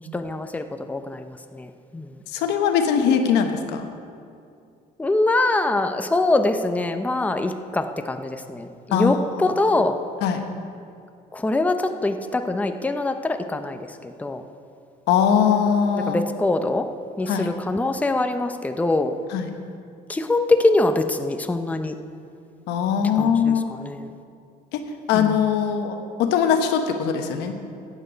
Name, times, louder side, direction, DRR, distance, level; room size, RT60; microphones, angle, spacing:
voice 1, 0.1-2.1 5.0-10.0 11.3-14.4 16.1-16.9 17.2-19.1 20.1-21.9 23.2-23.5 23.8-24.1 25.1-25.3, left 2 dB, 10° left, 7 dB, 0.6 m, -23 dB
voice 2, 2.3-3.9 8.9-9.5 10.2-10.4 15.1-16.2 17.3-17.5 19.3-19.5 22.7-23.7 24.7-24.8 25.1-27.5, left 7 dB, 90° left, 6 dB, 1.1 m, -21 dB
15.0 x 8.9 x 5.1 m, 2.4 s
cardioid pair, 110°, 17 cm